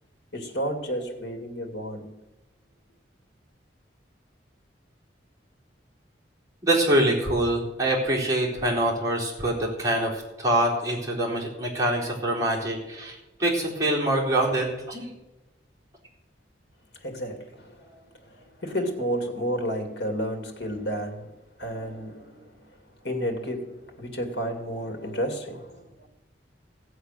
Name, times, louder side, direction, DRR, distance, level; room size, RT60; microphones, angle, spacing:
voice 1, 0.3-2.2 17.0-21.3 21.6-22.7 23.0-26.1, equal, 65° left, 2.6 m, -32 dB
voice 2, 6.6-15.1, right 1 dB, 15° right, 3.9 m, -25 dB
16.5 x 7.9 x 6.6 m
head